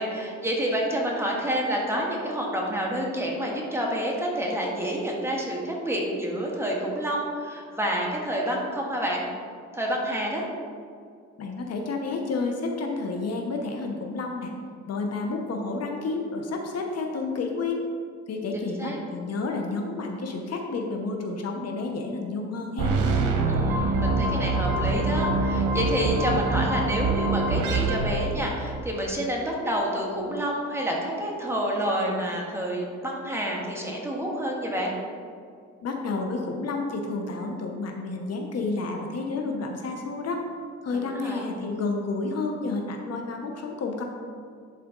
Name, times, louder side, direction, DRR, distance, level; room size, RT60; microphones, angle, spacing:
voice 1, 0.0-9.2 9.7-10.5 18.5-19.0 23.5-34.9 40.9-41.5, equal, 10° right, -2 dB, 1.6 m, -28 dB
voice 2, 11.4-14.5 14.9-17.8 18.3-23.0 35.8-40.5 40.8-44.0, left 3 dB, 55° left, 2 dB, 0.9 m, -30 dB
sound 1, 22.8-28.9, right 3 dB, 85° right, 0.9 m, -25 dB
11.0 x 4.2 x 3.8 m, 2.2 s
cardioid pair, 90°, 30 cm